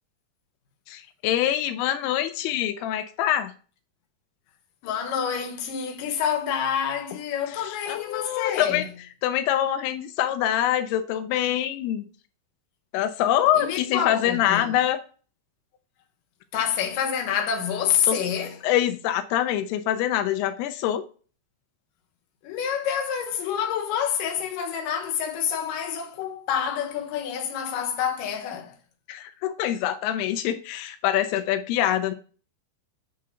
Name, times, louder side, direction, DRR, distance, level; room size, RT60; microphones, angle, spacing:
voice 1, 0.9-3.5 7.5-8.9 9.2-12.1 12.9-15.0 18.1-18.2 18.6-21.0 29.1-32.1, left 11 dB, 90° left, 2.6 m, -25 dB
voice 2, 4.8-8.9 13.6-14.7 16.5-18.6 22.4-28.7, left 8 dB, 70° left, 2.4 m, -27 dB
8.3 x 3.7 x 5.7 m
omnidirectional pair, 4.5 m